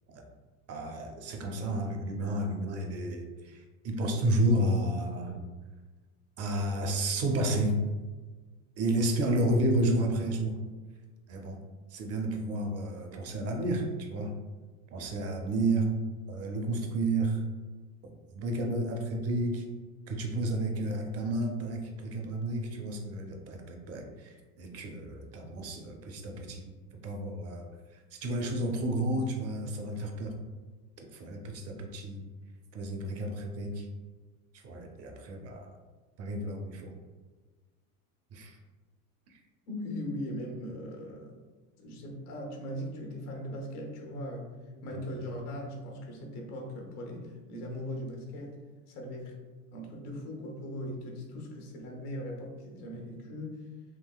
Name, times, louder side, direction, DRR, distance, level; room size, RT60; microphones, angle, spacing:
voice 1, 0.7-5.4 6.4-7.8 8.8-10.6 11.3-11.6 11.9-14.3 14.9-15.9 16.3-17.4 18.3-19.6 20.1-26.6 27.0-27.6 27.9-30.3 31.1-32.2 32.7-33.9 34.5-35.7 36.2-36.9 38.3-38.6 39.3-39.4, right 1 dB, 35° right, 3 dB, 0.5 m, -31 dB
voice 2, 39.7-41.4 41.8-44.5 44.8-48.6 48.9-49.4 49.7-53.6, equal, 85° left, 1 dB, 1.0 m, -39 dB
3.7 x 2.8 x 2.2 m, 1.3 s
supercardioid pair, 120°, 44 cm